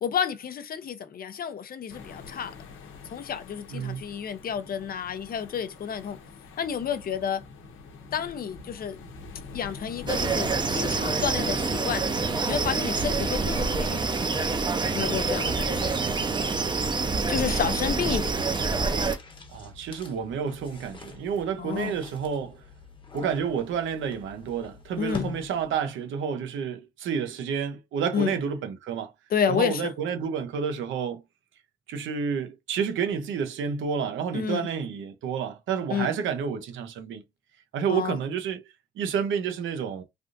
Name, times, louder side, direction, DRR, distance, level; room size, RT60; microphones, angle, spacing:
voice 1, 0.0-2.6 3.1-6.2 6.6-7.4 8.1-9.0 9.5-12.1 12.5-14.0 14.9-16.0 17.3-18.3 21.6-21.9 25.0-25.3 28.1-28.3 29.3-29.9 34.3-34.7 35.9-36.1 37.9-38.2, left 8 dB, 50° left, 0.6 m, -30 dB
sound 1, 1.9-16.2, left 4 dB, 80° left, 0.9 m, -44 dB
voice 2, 3.7-4.0 19.5-22.6 23.1-29.1 29.5-31.2 31.9-37.2 37.7-38.6 39.0-40.0, right 7 dB, 80° right, 0.7 m, -30 dB
sound 2, 10.1-19.2, right 4 dB, 20° right, 0.6 m, -26 dB
sound 3, 13.7-25.9, left 4 dB, 25° left, 1.0 m, -46 dB
3.4 x 2.5 x 2.5 m
cardioid pair, 90°, 20 cm